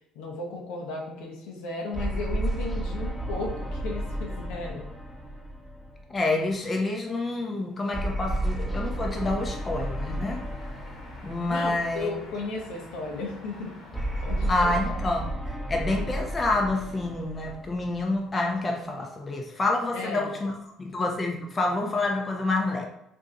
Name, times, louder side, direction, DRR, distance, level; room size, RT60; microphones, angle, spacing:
voice 1, 0.1-4.9 11.5-13.7 14.2-15.0 19.9-20.3, left 3 dB, 75° left, 0 dB, 0.7 m, -35 dB
sound 1, 1.9-6.5 7.9-12.3 13.9-18.5, right 1 dB, 5° right, 0.8 m, -32 dB
voice 2, 6.1-10.4 11.2-12.1 14.5-15.3 15.7-20.5 20.8-22.9, left 2 dB, 30° left, 1 dB, 0.6 m, -28 dB
sound 2, 9.0-14.7, left 2 dB, 50° left, 1.1 m, -47 dB
2.6 x 2.3 x 3.8 m, 0.80 s
hypercardioid pair, 70°, 0 cm